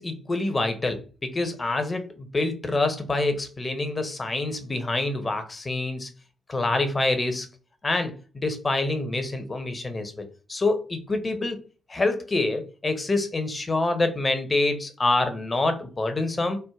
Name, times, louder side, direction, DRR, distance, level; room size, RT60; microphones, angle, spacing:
voice 1, 0.0-6.1 6.5-7.5 7.8-11.6 11.9-16.6, left 2 dB, 30° left, 8 dB, 0.6 m, -26 dB
3.2 x 2.1 x 2.3 m, 0.36 s
figure-of-eight pair, 40°, 0 cm